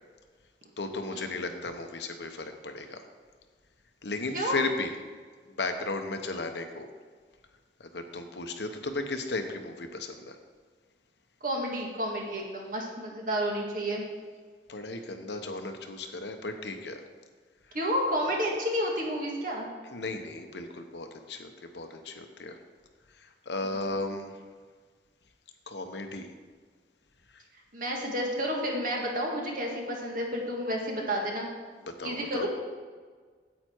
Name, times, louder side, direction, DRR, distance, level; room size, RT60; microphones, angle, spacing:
voice 1, 0.8-3.0 4.0-4.9 5.6-6.9 7.8-10.4 14.7-17.0 19.9-21.5 21.7-22.6 23.2-24.3 25.7-26.3 32.0-32.5, left 3 dB, 80° left, 6 dB, 1.0 m, -35 dB
voice 2, 11.4-14.0 17.7-19.7 23.6-23.7 27.7-31.5 32.0-32.5, equal, 50° right, 0 dB, 1.9 m, -30 dB
9.2 x 8.4 x 4.6 m, 1.5 s
head